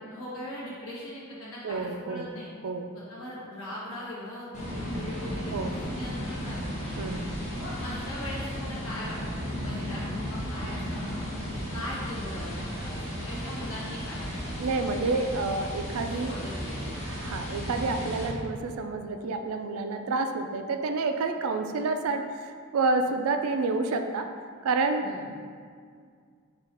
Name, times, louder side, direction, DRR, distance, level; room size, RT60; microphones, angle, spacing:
voice 1, 0.1-2.5 3.1-6.8 7.5-11.2 11.7-14.5 16.0-17.1 25.0-25.3, left 1 dB, 70° left, -7 dB, 1.4 m, -40 dB
voice 2, 1.6-2.4 2.6-2.9 5.5-5.7 7.0-7.3 14.6-16.3 17.0-24.3 24.6-25.3, right 3 dB, 75° right, 7 dB, 0.4 m, -29 dB
sound 1, 4.5-18.3, equal, 30° left, 1.1 m, -34 dB
5.0 x 2.4 x 4.2 m, 2.1 s
head